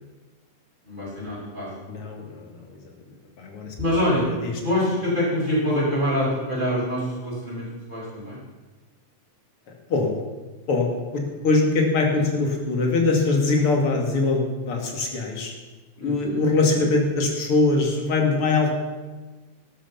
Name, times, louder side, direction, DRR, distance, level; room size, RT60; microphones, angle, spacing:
voice 1, 0.8-1.7 3.8-4.3 4.6-8.4 16.0-16.4, left 1 dB, 15° right, -7 dB, 6.2 m, -25 dB
voice 2, 1.9-2.4 3.4-3.7 4.4-4.5 9.9-10.1 10.7-15.5 16.0-18.7, left 3 dB, 45° left, 1 dB, 2.9 m, -22 dB
13.0 x 12.0 x 5.7 m, 1.2 s
omnidirectional pair, 3.8 m